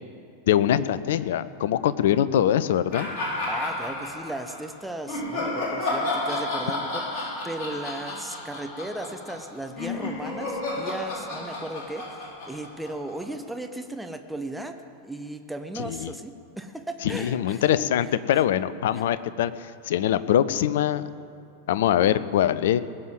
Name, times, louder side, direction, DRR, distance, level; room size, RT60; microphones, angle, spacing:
voice 1, 0.5-3.1 15.8-16.1 17.0-19.5 19.8-21.1 21.7-22.8, left 11 dB, 55° left, 15 dB, 0.6 m, -23 dB
sound 1, 2.9-4.6 5.1-13.3, left 2 dB, 40° left, 4.2 m, -31 dB
voice 2, 3.5-14.8 15.0-17.6 18.0-18.1 18.9-19.0, right 1 dB, 5° right, 6 dB, 0.9 m, -36 dB
20.0 x 7.2 x 7.8 m, 2.6 s
figure-of-eight pair, 90°, 0 cm